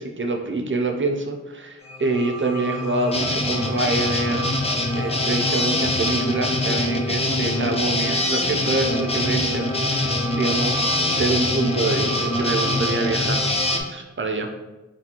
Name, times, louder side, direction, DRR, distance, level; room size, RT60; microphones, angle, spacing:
voice 1, 0.0-4.5 4.9-13.4 13.9-14.5, right 3 dB, 40° right, 4 dB, 0.4 m, -26 dB
sound 1, 1.8-13.8, equal, 65° left, 0.6 m, -30 dB
sound 2, 3.1-13.8, left 2 dB, 20° left, 0.4 m, -24 dB
3.3 x 2.1 x 2.8 m, 1.0 s
wide cardioid pair, 45°, 29 cm